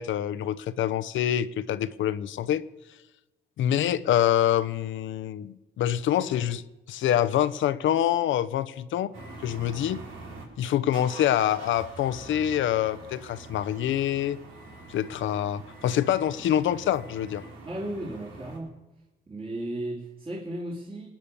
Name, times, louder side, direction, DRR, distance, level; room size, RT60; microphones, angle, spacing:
voice 1, 0.0-2.6 3.6-6.6 6.9-9.1 9.4-10.0 10.6-14.4 14.9-17.5, left 11 dB, 75° left, 0.8 m, -26 dB
sound 1, 9.1-10.4 10.9-18.6, right 2 dB, 90° right, 4.1 m, -45 dB
voice 2, 17.6-18.7 19.3-21.1, right 1 dB, 30° right, 2.9 m, -35 dB
20.0 x 9.2 x 6.9 m
cardioid pair, 90°, 20 cm